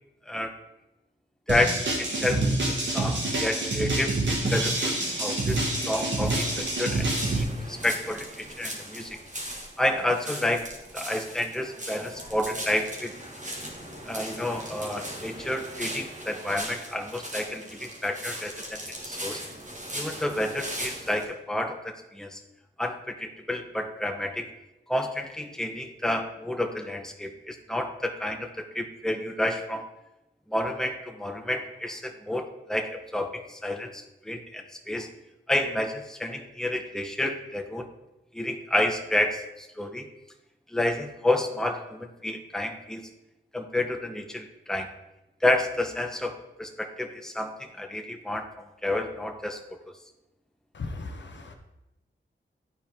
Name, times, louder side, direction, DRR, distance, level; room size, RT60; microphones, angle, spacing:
voice 1, 1.5-9.2 9.8-10.7 10.9-13.1 14.1-19.4 19.9-22.4 22.8-24.5 24.9-29.9 30.5-35.1 35.5-37.9 38.3-40.1 40.7-43.1 43.5-44.9 45.4-48.5 48.8-49.6 49.9-50.0, left 1 dB, 5° left, 5 dB, 0.8 m, -30 dB
sound 1, 1.5-7.4, right 2 dB, 65° right, 1.8 m, -27 dB
sound 2, 4.1-21.2, equal, 35° right, 1.7 m, -39 dB
voice 2, 50.7-51.5, left 3 dB, 60° left, 4 dB, 0.9 m, -37 dB
9.5 x 4.5 x 3.5 m, 0.93 s
cardioid pair, 45°, 21 cm